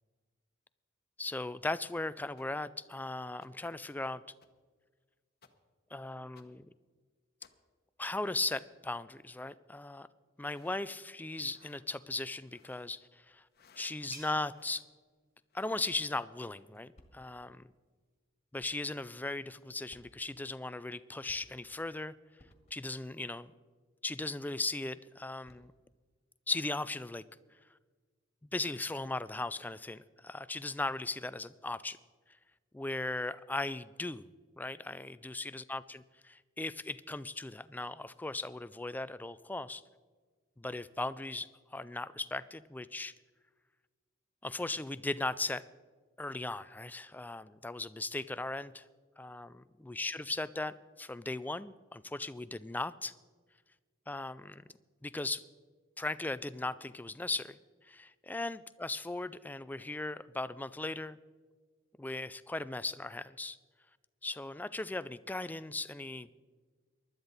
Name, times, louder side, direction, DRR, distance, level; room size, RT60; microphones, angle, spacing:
voice 1, 1.2-4.2 5.9-6.7 8.0-10.1 10.4-13.4 13.8-14.8 15.5-17.6 18.5-22.1 22.7-23.5 24.0-25.7 26.5-27.2 28.5-32.0 32.7-34.3 34.6-39.8 40.6-43.1 44.4-45.6 46.2-48.8 49.2-49.5 49.8-53.1 54.1-54.6 55.0-55.4 56.0-57.6 57.8-61.2 62.0-63.6 64.2-66.3, left 2 dB, 10° left, 15 dB, 0.3 m, -38 dB
sound 1, 2.4-2.5 3.4-3.5 4.4-4.5 5.4-5.5 6.4-6.5 7.4-7.5 8.4-8.5 10.4-10.8 11.5-11.8 12.4-12.9 13.5-13.9 14.5-14.9 15.5-16.0, left 5 dB, 50° left, 1.0 m, -62 dB
sound 2, 12.8-18.2, right 2 dB, 45° right, 2.7 m, -59 dB
sound 3, 16.9-17.6 18.6-19.0 19.9-20.5 21.3-21.9 22.4-23.0 25.3-25.9, equal, 35° left, 1.8 m, -63 dB
20.0 x 12.0 x 4.0 m, 1.4 s
head